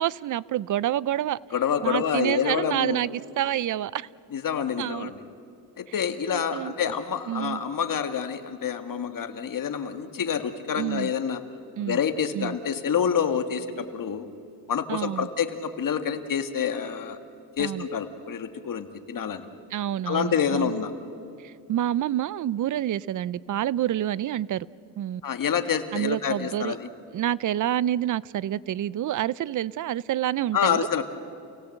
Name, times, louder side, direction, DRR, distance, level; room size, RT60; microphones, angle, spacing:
voice 1, 0.0-1.4 1.8-4.1 4.8-5.1 6.3-6.9 7.3-7.6 10.8-11.1 11.8-12.0 12.3-12.6 14.9-15.3 17.6-17.9 19.7-20.7 21.4-24.7 25.0-25.2 25.9-26.8 27.1-30.9, right 12 dB, 40° right, 21 dB, 0.5 m, -28 dB
voice 2, 1.5-3.0 4.3-5.2 5.8-11.4 11.8-14.2 14.7-17.2 17.6-19.4 20.1-20.9 25.2-26.9 30.5-31.0, left 7 dB, 45° left, 8 dB, 1.8 m, -27 dB
28.5 x 17.5 x 7.8 m, 2.5 s
cardioid pair, 110°, 48 cm